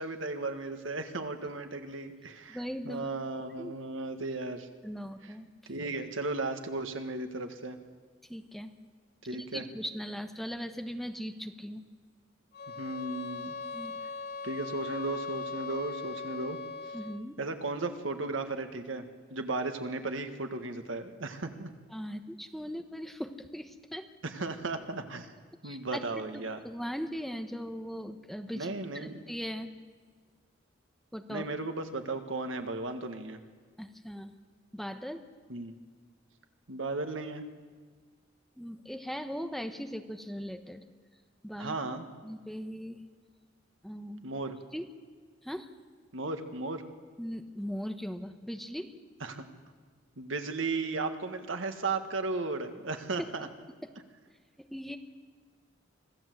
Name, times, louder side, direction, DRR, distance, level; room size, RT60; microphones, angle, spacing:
voice 1, 0.0-4.7 5.2-5.3 5.7-7.8 9.3-9.6 12.8-13.6 14.4-16.6 17.4-19.0 19.3-21.7 24.2-25.3 25.6-26.6 28.5-29.1 31.3-33.4 35.5-35.7 36.7-37.5 41.6-42.1 44.2-44.6 46.1-46.8 49.2-49.5 50.2-53.5, right 3 dB, 80° right, 7 dB, 1.7 m, -35 dB
voice 2, 2.5-3.1 3.6-3.8 4.8-5.5 8.3-8.7 9.3-11.9 13.7-14.0 16.9-17.4 21.9-24.1 25.6-26.0 26.3-29.7 31.1-31.5 33.8-34.3 34.7-35.3 38.6-40.8 41.4-41.8 42.2-43.0 43.8-44.2 44.7-44.8 45.4-45.7 47.2-48.9 54.6-55.0, equal, ahead, 6 dB, 1.0 m, -39 dB
sound 1, 12.5-17.3, left 4 dB, 55° left, 1.0 m, -39 dB
25.0 x 15.0 x 7.9 m, 1.5 s
head